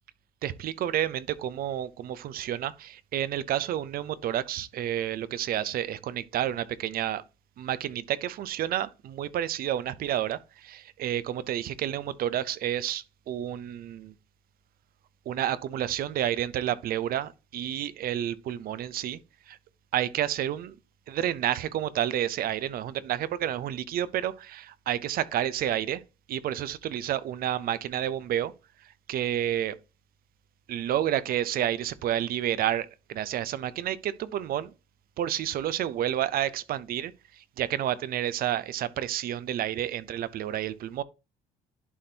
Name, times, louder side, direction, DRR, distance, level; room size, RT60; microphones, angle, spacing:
voice 1, 0.4-7.2 7.6-14.1 15.3-19.2 19.5-19.6 19.9-20.8 21.1-26.0 26.3-28.5 28.8-29.8 30.7-34.7 35.2-41.0, right 11 dB, 60° right, 0.6 m, -30 dB
11.0 x 4.2 x 2.8 m
cardioid pair, 110°, 17 cm